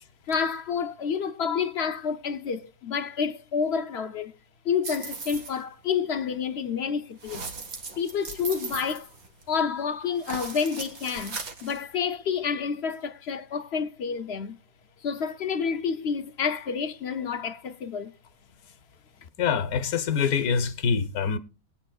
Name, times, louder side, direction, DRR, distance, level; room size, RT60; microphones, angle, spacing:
voice 1, 0.3-4.3 4.6-7.5 8.0-9.1 9.5-14.6 15.0-18.1, left 6 dB, 55° left, 0.8 m, -29 dB
sound 1, 4.8-5.6 7.2-9.6 10.2-11.8, right 4 dB, 75° right, 2.1 m, -38 dB
voice 2, 19.4-21.4, left 6 dB, 90° left, 1.5 m, -25 dB
20.5 x 9.3 x 2.3 m
omnidirectional pair, 1.5 m